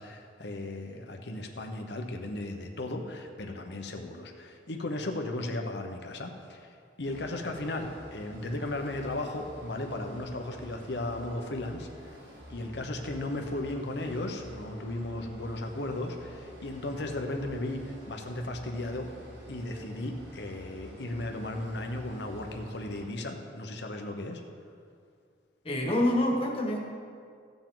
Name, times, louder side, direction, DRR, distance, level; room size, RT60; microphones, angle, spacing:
voice 1, 0.0-12.2 12.5-19.1 19.5-24.4, left 1 dB, 70° left, 3 dB, 1.0 m, -36 dB
sound 1, 7.0-23.0, equal, 85° right, 2.1 m, -49 dB
voice 2, 25.6-26.8, left 1 dB, 30° left, -1 dB, 1.5 m, -26 dB
15.0 x 7.1 x 3.8 m, 2.3 s
head